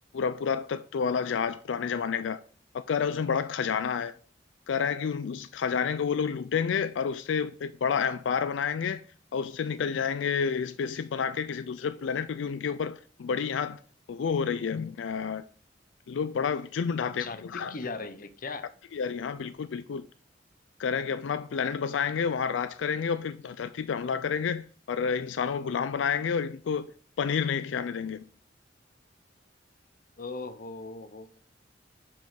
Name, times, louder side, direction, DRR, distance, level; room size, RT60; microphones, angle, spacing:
voice 1, 0.1-2.4 2.9-4.1 4.7-9.0 9.3-13.8 14.1-15.5 16.1-17.7 18.9-20.0 20.8-26.9 27.2-28.3, left 6 dB, 90° left, 0.4 m, -29 dB
voice 2, 17.0-18.7 30.2-31.4, left 3 dB, 50° left, 0.8 m, -39 dB
5.4 x 5.3 x 5.7 m
head